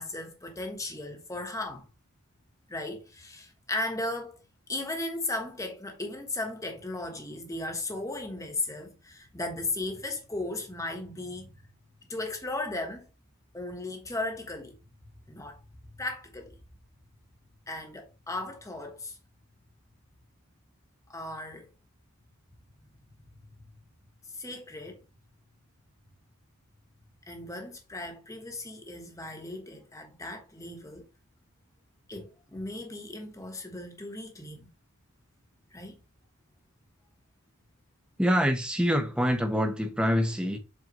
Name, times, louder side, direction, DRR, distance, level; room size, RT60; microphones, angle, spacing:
voice 1, 0.0-1.9 2.7-4.4 4.7-11.5 12.1-13.1 13.5-14.8 15.3-15.6 16.0-16.6 17.7-19.2 21.1-21.7 24.3-25.0 27.3-31.1 32.1-34.7 35.7-36.0, left 2 dB, 15° left, 1.2 m, -36 dB
voice 2, 38.2-40.6, equal, 5° right, 0.9 m, -25 dB
7.7 x 4.3 x 3.0 m
head